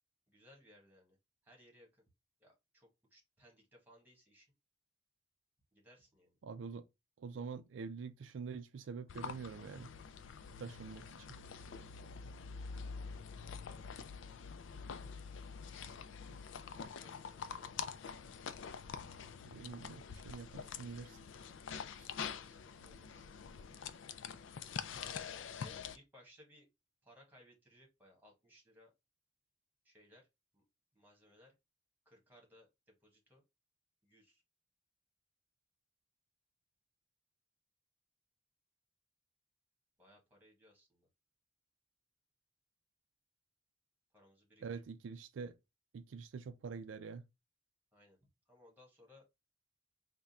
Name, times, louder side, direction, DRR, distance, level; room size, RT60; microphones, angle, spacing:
voice 1, 0.3-1.2 1.4-2.0 2.4-4.5 5.7-6.4 16.8-18.5 22.1-23.2 25.1-26.7 27.0-28.9 29.8-30.3 30.5-30.6 30.9-31.5 32.0-33.4 34.0-34.4 40.0-41.1 44.1-44.7 47.9-49.2, left 1 dB, 10° right, 1.4 m, -64 dB
voice 2, 6.4-6.9 7.2-9.9 10.6-11.3 15.0-15.1 15.8-16.0 16.3-16.4 19.5-21.2 22.0-22.1 44.6-45.5 45.9-47.2, right 5 dB, 75° right, 0.4 m, -46 dB
sound 1, 9.1-26.0, left 6 dB, 75° left, 0.4 m, -46 dB
3.6 x 2.2 x 4.1 m
head